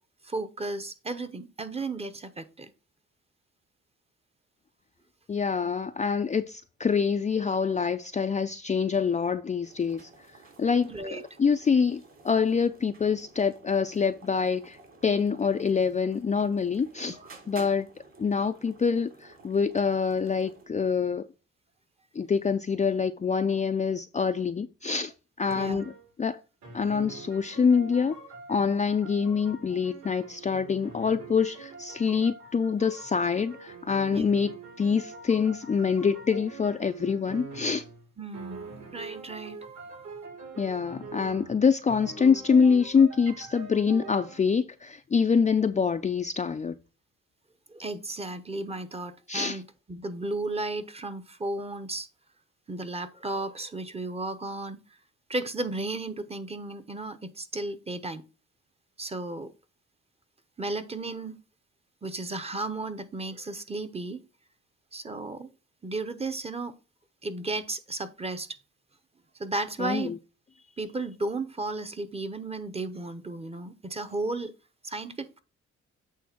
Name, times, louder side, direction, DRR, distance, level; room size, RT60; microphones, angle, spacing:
voice 1, 0.2-2.7 10.9-11.2 17.1-17.4 25.5-25.8 34.1-34.3 38.2-38.6 38.9-39.6 47.7-52.1 52.7-54.8 55.3-58.2 59.0-59.5 60.6-61.4 62.0-64.2 64.9-65.5 65.8-66.8 67.2-68.5 69.4-70.1 70.8-74.5 74.8-75.4, right 2 dB, 20° right, 0.9 m, -34 dB
voice 2, 5.3-10.1 10.6-14.8 15.0-17.2 17.5-17.9 18.2-21.3 22.2-25.1 25.4-25.9 26.2-26.4 26.7-28.1 28.5-34.5 34.8-37.8 40.6-46.7 49.3-49.6 69.8-70.1, left 6 dB, 25° left, 0.5 m, -25 dB
sound 1, 9.6-20.7, right 3 dB, 45° right, 2.9 m, -53 dB
sound 2, 25.4-26.1 26.6-38.1 38.3-44.4, right 3 dB, 65° right, 4.0 m, -44 dB
8.5 x 3.3 x 6.0 m
cardioid pair, 90°, 30 cm